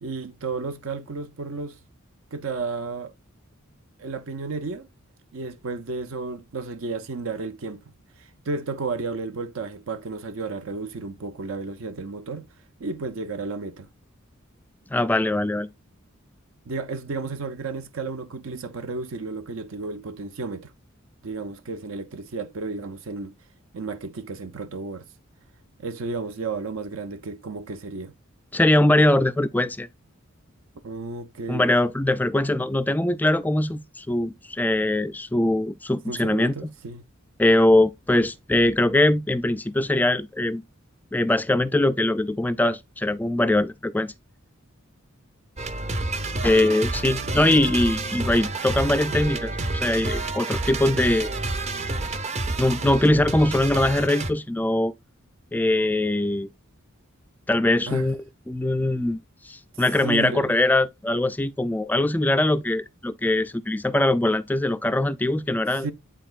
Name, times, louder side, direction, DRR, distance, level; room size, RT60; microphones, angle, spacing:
voice 1, 0.0-1.8 2.3-3.1 4.0-4.9 5.3-7.9 8.2-12.5 12.8-13.9 16.7-20.7 21.2-23.3 23.7-25.1 25.8-28.1 30.8-31.7 36.1-37.0 47.2-47.7 57.9-58.1 60.0-60.6 65.7-65.9, right 4 dB, 70° right, 0.6 m, -33 dB
voice 2, 14.9-15.7 28.5-29.9 31.5-36.7 37.4-40.6 41.1-44.1 46.4-51.3 52.6-54.9 55.5-56.5 57.5-59.2 59.4-65.9, left 1 dB, 10° left, 0.3 m, -22 dB
sound 1, 45.6-54.3, right 2 dB, 30° right, 0.6 m, -29 dB
10.0 x 3.9 x 2.4 m
head